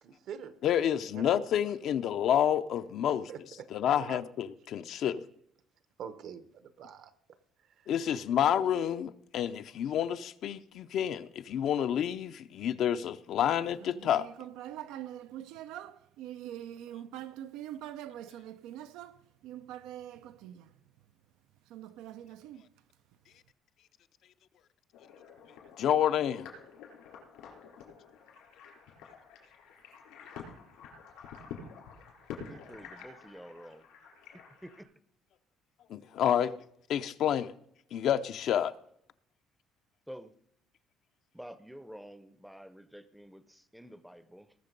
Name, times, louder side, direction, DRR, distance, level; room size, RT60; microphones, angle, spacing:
voice 1, 0.0-0.6 0.9-1.4 3.3-3.7 4.0-4.2 6.0-7.1 7.8-7.9, right 8 dB, 60° right, 0.9 m, -45 dB
voice 2, 0.6-3.3 3.7-5.2 7.9-14.3 25.8-26.5 35.9-36.5 36.9-37.5 37.9-38.7, left 10 dB, 55° left, 0.6 m, -29 dB
Human voice, 13.7-21.1 21.7-23.1, right 12 dB, 85° right, 0.5 m, -44 dB
sound 1, 24.9-34.8, left 6 dB, 85° left, 4.4 m, -49 dB
voice 3, 32.5-33.9 34.6-34.9 40.1-40.3 41.3-44.5, equal, ahead, 0.6 m, -49 dB
19.0 x 6.7 x 5.3 m
cardioid pair, 150°, 0 cm